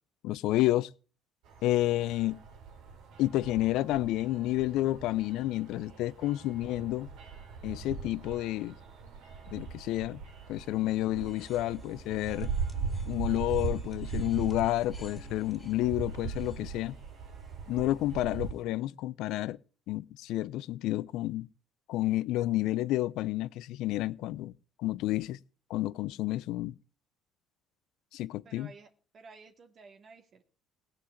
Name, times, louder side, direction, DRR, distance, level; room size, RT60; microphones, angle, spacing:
voice 1, 0.2-0.9 1.6-2.4 3.2-7.1 7.6-8.8 9.5-10.2 10.5-12.5 13.1-17.0 17.7-19.6 19.9-21.5 21.9-24.5 24.8-25.4 25.7-26.8 28.1-28.7, left 15 dB, 65° left, 0.6 m, -30 dB
sound 1, 1.4-18.5, right 5 dB, 65° right, 3.3 m, -40 dB
sound 2, 11.1-18.6, right 2 dB, 25° left, 2.5 m, -54 dB
voice 2, 17.6-18.0 28.4-30.4, right 4 dB, 45° right, 2.3 m, -54 dB
17.5 x 5.9 x 8.3 m
hypercardioid pair, 60°, 0 cm